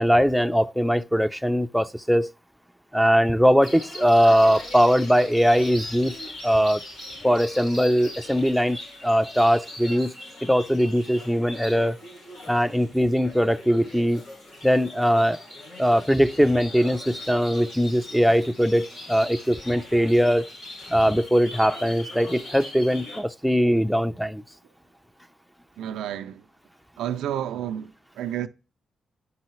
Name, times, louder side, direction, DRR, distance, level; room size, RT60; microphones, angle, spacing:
voice 1, 0.0-2.3 2.9-6.1 6.4-6.8 7.2-10.1 10.4-12.0 12.5-14.2 14.6-15.4 15.8-20.5 20.9-24.4, equal, ahead, 0.6 m, -21 dB
sound 1, 3.6-23.2, left 1 dB, 85° left, 4.9 m, -41 dB
voice 2, 25.8-26.4 27.0-28.5, right 10 dB, 85° right, 0.4 m, -30 dB
9.9 x 5.5 x 3.1 m
supercardioid pair, 50°, 0 cm